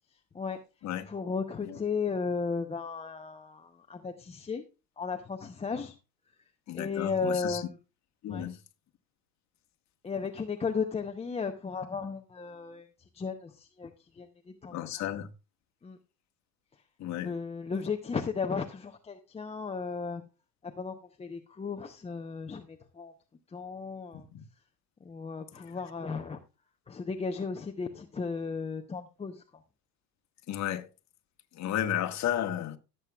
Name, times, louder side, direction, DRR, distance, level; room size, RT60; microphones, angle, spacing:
voice 1, 1.0-4.7 5.0-5.9 6.7-7.8 8.3-8.5 10.0-12.9 13.1-14.8 15.8-16.0 17.2-20.2 20.6-23.1 23.5-24.3 25.0-26.4 26.9-29.6, left 5 dB, 15° left, 0.7 m, -35 dB
voice 2, 6.7-7.6 8.2-8.6 14.7-15.3 17.0-17.3 24.1-24.4 30.5-30.9 31.5-32.8, left 11 dB, 35° left, 1.3 m, -33 dB
17.0 x 7.7 x 2.3 m
hypercardioid pair, 85°, 49 cm